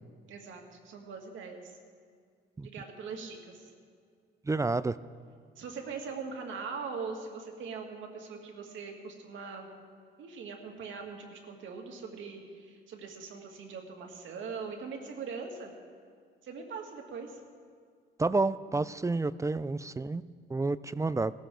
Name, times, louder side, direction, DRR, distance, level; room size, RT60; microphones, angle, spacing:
voice 1, 0.3-1.8 2.6-3.7 5.6-9.7 10.2-15.7 16.4-17.4, right 5 dB, 75° right, 2 dB, 2.2 m, -41 dB
voice 2, 4.5-4.9 18.2-20.2 20.5-21.3, right 3 dB, 15° right, 17 dB, 0.4 m, -29 dB
18.0 x 13.5 x 3.9 m, 2.1 s
cardioid pair, 90°, 20 cm